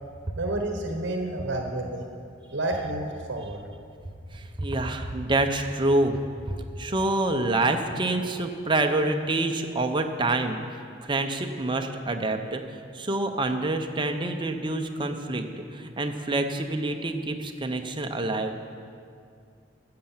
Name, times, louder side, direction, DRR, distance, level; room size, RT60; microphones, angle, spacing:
voice 1, 0.4-2.0 2.5-3.6, right 2 dB, 65° right, 3 dB, 1.0 m, -30 dB
voice 2, 4.3-6.2 6.5-10.6 11.1-18.6, right 2 dB, 25° right, 5 dB, 0.8 m, -27 dB
13.0 x 7.7 x 7.4 m, 2.4 s
head